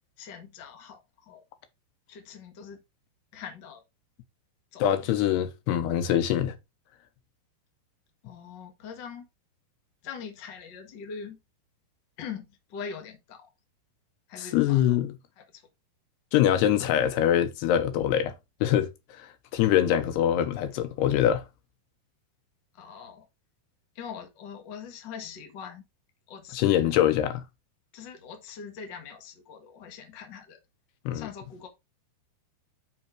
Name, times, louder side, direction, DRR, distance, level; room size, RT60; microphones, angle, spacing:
voice 1, 0.2-1.4 2.1-2.8 3.3-3.8 4.7-5.1 8.2-9.3 10.0-11.4 12.2-13.5 14.3-15.0 15.4-15.7 22.7-23.3 23.9-25.8 26.3-26.9 27.9-30.6 31.1-31.7, left 6 dB, 45° left, 1.4 m, -42 dB
voice 2, 4.8-6.6 14.4-15.1 16.3-18.3 18.6-21.4 26.5-27.4 31.1-31.3, left 11 dB, 85° left, 3.1 m, -24 dB
6.3 x 5.8 x 4.5 m
omnidirectional pair, 4.6 m